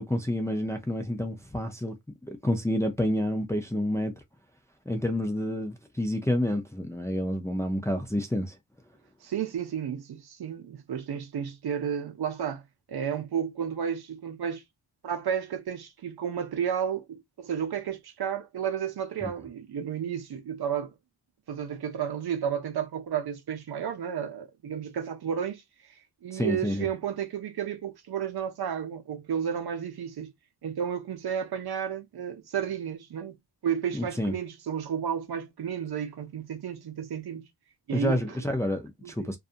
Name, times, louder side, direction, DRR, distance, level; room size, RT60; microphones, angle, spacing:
voice 1, 0.0-1.9 2.2-4.1 4.9-8.6 19.2-19.3 26.3-26.9 33.9-34.3 37.9-39.4, left 1 dB, 5° left, 0.4 m, -29 dB
voice 2, 9.2-12.6 12.9-14.6 15.0-20.9 21.5-30.3 30.6-33.4 33.6-37.5 37.9-38.4 39.0-39.3, right 8 dB, 65° right, 0.7 m, -32 dB
2.6 x 2.4 x 2.4 m
wide cardioid pair, 165°, 42 cm